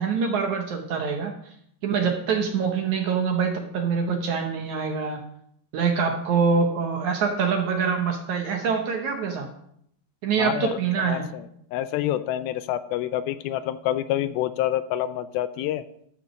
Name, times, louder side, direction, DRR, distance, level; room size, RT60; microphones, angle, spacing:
voice 1, 0.0-1.3 1.8-5.2 5.7-9.5 10.2-11.3, right 6 dB, 65° right, 3 dB, 2.0 m, -25 dB
voice 2, 10.4-11.5 11.7-15.8, left 12 dB, 80° left, 13 dB, 2.3 m, -27 dB
12.0 x 5.9 x 6.4 m, 0.71 s
omnidirectional pair, 4.4 m